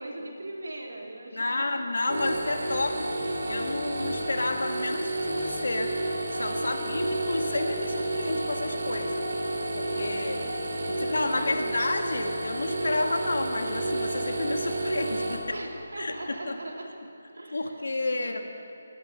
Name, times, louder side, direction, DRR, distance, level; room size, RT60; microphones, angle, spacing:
voice 1, 0.0-1.8 2.2-2.7 6.5-6.9 9.6-10.5 10.9-11.7 15.5-16.9 17.3-17.7 18.1-18.3, right 1 dB, 85° right, -1 dB, 3.3 m, -40 dB
voice 2, 1.3-3.1 3.5-5.9 6.3-9.2 9.7-10.4 11.0-15.4 16.0-16.5 17.5-18.6, left 2 dB, 85° left, 5 dB, 1.5 m, -30 dB
sound 1, 2.1-15.4, right 2 dB, 70° right, 3.2 m, -31 dB
19.5 x 10.0 x 6.9 m, 2.9 s
figure-of-eight pair, 165°, 0 cm